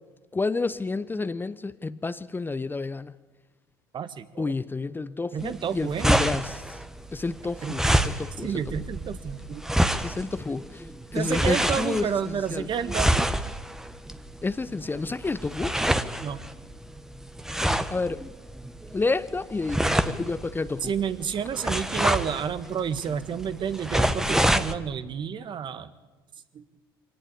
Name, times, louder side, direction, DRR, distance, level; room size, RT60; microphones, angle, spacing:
voice 1, 0.3-3.1 4.4-6.6 7.1-8.5 10.0-10.9 11.1-12.7 14.4-15.8 17.9-18.3 18.9-20.9, left 3 dB, 15° left, 1.0 m, -30 dB
voice 2, 3.9-4.5 5.3-6.1 7.6-8.0 8.4-9.6 11.1-13.3 16.2-16.4 20.8-25.9 26.5-26.6, right 8 dB, 40° right, 1.7 m, -30 dB
sound 1, 5.4-24.7, right 1 dB, 5° right, 1.4 m, -28 dB
25.5 x 18.5 x 8.7 m
hypercardioid pair, 70°, 12 cm